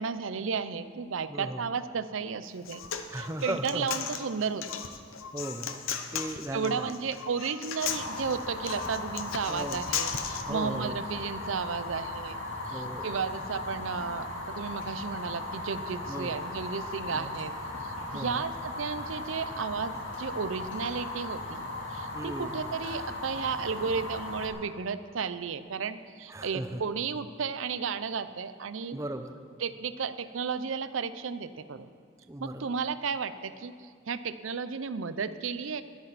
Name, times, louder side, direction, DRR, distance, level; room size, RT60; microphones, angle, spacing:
voice 1, 0.0-2.8 3.1-4.7 6.5-12.4 12.7-17.5 17.8-21.6 21.9-29.0 29.6-31.9 32.4-33.7 34.1-35.8, right 5 dB, 75° right, 13 dB, 0.6 m, -33 dB
voice 2, 1.3-1.7 3.1-3.9 5.3-5.8 6.1-6.9 9.5-9.9 10.5-11.0 12.7-13.1 16.1-16.4 17.1-17.3 18.1-18.4 22.1-22.6 26.3-26.8 28.9-29.4 32.3-32.7, right 1 dB, 15° right, 7 dB, 0.6 m, -37 dB
Human voice, 2.4-10.4, left 8 dB, 85° left, 0.8 m, -36 dB
Fire, 7.8-24.5, left 2 dB, 65° left, 2.1 m, -37 dB
20.0 x 8.7 x 4.1 m, 2.1 s
head